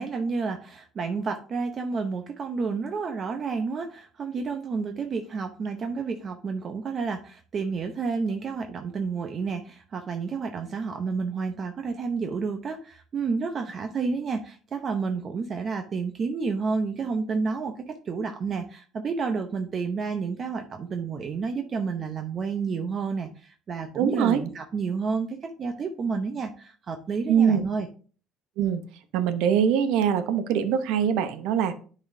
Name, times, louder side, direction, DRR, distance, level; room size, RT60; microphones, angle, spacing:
voice 1, 0.0-27.9, right 5 dB, 40° right, 5 dB, 0.7 m, -30 dB
voice 2, 24.0-24.4 27.3-27.6 28.6-28.8 29.1-31.7, right 8 dB, 85° right, 10 dB, 0.8 m, -23 dB
10.5 x 4.1 x 2.6 m, 0.40 s
cardioid pair, 120°, 0 cm